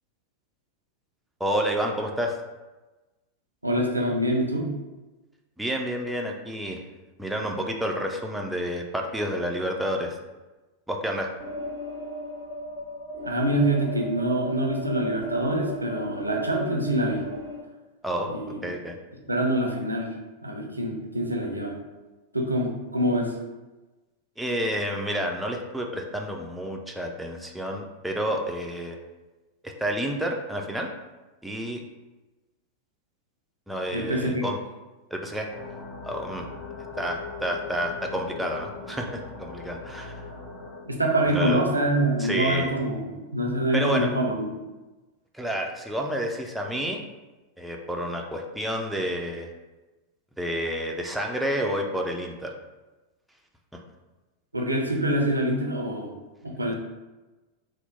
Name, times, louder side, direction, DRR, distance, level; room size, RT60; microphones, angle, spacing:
voice 1, 1.4-2.4 5.6-6.8 7.2-10.2 10.9-11.3 18.0-18.3 18.6-18.9 24.4-29.0 29.6-30.9 31.4-31.8 33.7-34.6 35.1-35.5 36.0-36.5 37.0-40.2 41.3-41.6 42.2-42.7 43.7-44.1 45.3-47.0 47.6-49.5 50.4-52.5, equal, 5° right, 1 dB, 0.4 m, -29 dB
voice 2, 3.6-4.7 13.2-17.2 18.3-18.6 19.3-20.1 20.4-21.8 22.3-23.4 33.9-34.5 40.9-44.4 54.5-56.1 56.4-56.7, right 1 dB, 85° right, 1 dB, 0.5 m, -25 dB
sound 1, 11.4-17.6, left 1 dB, 75° left, 1.2 m, -36 dB
sound 2, 35.5-40.8, left 4 dB, 45° left, 1.0 m, -40 dB
2.9 x 2.0 x 3.6 m, 1.1 s
figure-of-eight pair, 90°, 0 cm